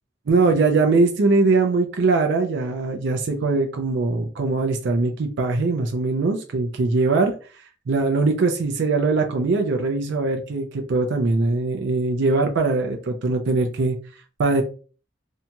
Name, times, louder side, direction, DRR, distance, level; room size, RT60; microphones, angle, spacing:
voice 1, 0.3-7.3 7.9-14.0 14.4-14.6, right 3 dB, 65° right, 4 dB, 0.4 m, -21 dB
2.8 x 2.7 x 2.2 m, 0.38 s
head